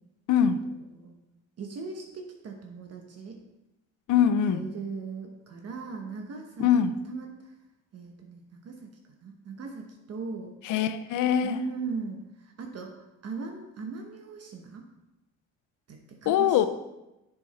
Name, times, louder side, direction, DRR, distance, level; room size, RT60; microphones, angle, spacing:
voice 1, 0.3-0.6 4.1-4.6 6.6-6.9 10.6-11.6 16.3-16.7, left 8 dB, 80° left, 11 dB, 0.6 m, -23 dB
voice 2, 1.6-3.4 4.5-7.5 7.9-8.9 9.2-10.5 11.4-14.8 15.9-16.7, right 5 dB, 55° right, 2 dB, 1.0 m, -39 dB
7.5 x 6.2 x 4.1 m, 0.96 s
cardioid pair, 90°, 30 cm